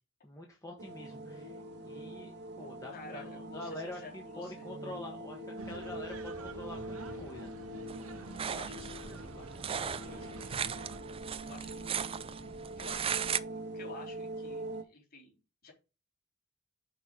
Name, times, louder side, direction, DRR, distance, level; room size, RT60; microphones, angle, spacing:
voice 1, 0.2-1.6 1.8-7.5, left 1 dB, 15° left, 0 dB, 1.3 m, -45 dB
sound 1, 0.8-14.8, right 1 dB, 55° right, 1.4 m, -44 dB
voice 2, 2.9-4.7 7.1-7.2 8.5-10.7 11.4-12.1 12.8-15.7, left 3 dB, 45° left, 0 dB, 3.7 m, -52 dB
sound 2, 5.6-11.0, right 3 dB, 85° right, 1.3 m, -48 dB
sound 3, 7.9-13.4, right 8 dB, 25° right, 0.4 m, -37 dB
6.1 x 4.5 x 6.3 m, 0.30 s
head